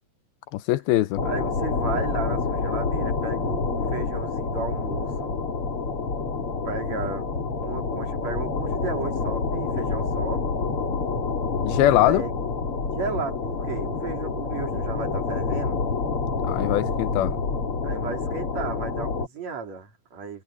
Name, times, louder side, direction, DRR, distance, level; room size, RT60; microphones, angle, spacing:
voice 1, 0.5-1.2 11.6-12.2 16.5-17.3, left 14 dB, 90° left, 2.8 m, -21 dB
sound 1, 1.2-19.3, left 4 dB, 35° left, 3.8 m, -27 dB
voice 2, 1.2-5.3 6.6-7.3 7.6-10.4 12.0-12.3 12.9-15.8 17.8-20.4, right 5 dB, 45° right, 4.7 m, -34 dB
omnidirectional pair, 4.3 m